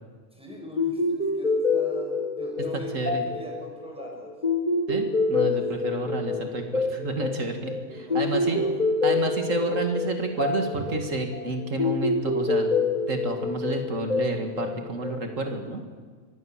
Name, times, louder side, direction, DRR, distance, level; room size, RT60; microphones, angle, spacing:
voice 1, 0.3-4.3 5.8-6.0 7.9-8.9, left 1 dB, 5° right, 0 dB, 6.6 m, -41 dB
sound 1, 0.8-15.5, left 3 dB, 35° left, 2.6 m, -27 dB
voice 2, 4.9-8.6 9.0-12.7 13.1-15.8, right 2 dB, 85° right, 4 dB, 2.6 m, -30 dB
25.0 x 20.0 x 7.5 m, 1.6 s
omnidirectional pair, 1.3 m